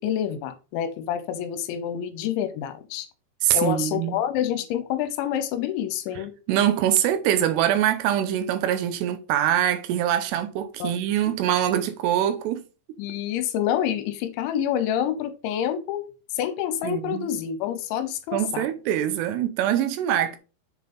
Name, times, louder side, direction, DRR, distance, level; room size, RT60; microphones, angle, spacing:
voice 1, 0.0-3.1 3.5-6.3 10.8-10.9 11.2-11.3 13.0-16.0 16.4-18.6, left 10 dB, 80° left, 2.9 m, -27 dB
voice 2, 3.4-4.2 6.5-12.6 16.8-17.3 18.3-20.4, right 11 dB, 80° right, 2.4 m, -23 dB
7.5 x 5.6 x 3.7 m
omnidirectional pair, 5.6 m